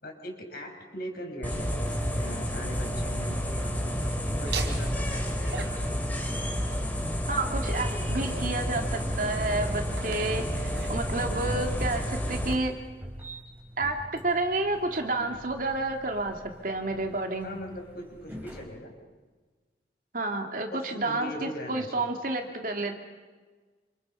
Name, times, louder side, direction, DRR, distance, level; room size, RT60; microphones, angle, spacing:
voice 1, 0.0-5.6 17.4-18.9 20.7-22.1, equal, 55° left, 2 dB, 6.1 m, -41 dB
sound 1, 1.4-12.5, equal, 10° left, 3.5 m, -30 dB
sound 2, 3.1-18.7, equal, 10° right, 4.7 m, -46 dB
Laughter, 4.4-12.0, right 4 dB, 75° right, 3.2 m, -42 dB
voice 2, 7.3-12.7 13.8-17.6 20.1-23.0, right 2 dB, 50° right, 4 dB, 2.7 m, -30 dB
28.0 x 28.0 x 5.8 m, 1.3 s
head